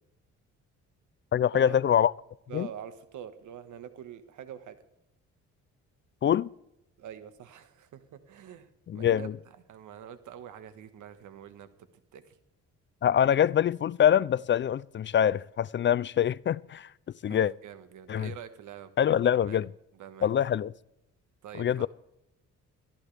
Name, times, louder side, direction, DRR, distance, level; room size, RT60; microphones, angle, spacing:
voice 1, 1.3-2.1 2.5-2.7 6.2-6.5 8.9-9.3 13.0-16.9 17.2-17.5 18.1-18.3 19.0-19.7 20.2-20.7 21.6-21.9, left 9 dB, 40° left, 0.4 m, -24 dB
voice 2, 2.5-4.8 7.0-9.3 9.7-11.7 12.1-12.4 17.3-19.7 19.9-20.3 21.4-21.9, right 9 dB, 75° right, 1.6 m, -45 dB
22.0 x 13.5 x 3.4 m
cardioid pair, 90°, 30 cm